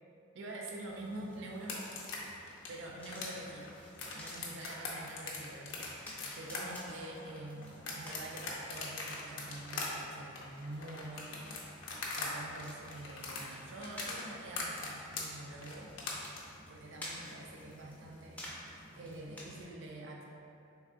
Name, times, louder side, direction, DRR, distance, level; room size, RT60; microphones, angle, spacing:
voice 1, 0.3-1.8 2.4-3.8 4.1-11.5 12.1-15.9 16.7-20.2, right 2 dB, 55° right, -1 dB, 0.4 m, -46 dB
sound 1, 0.8-19.6, left 1 dB, 5° left, 0.4 m, -52 dB
sound 2, 1.6-12.3 12.5-16.4, left 4 dB, 60° left, 0.5 m, -41 dB
3.5 x 3.4 x 2.4 m, 2.7 s
head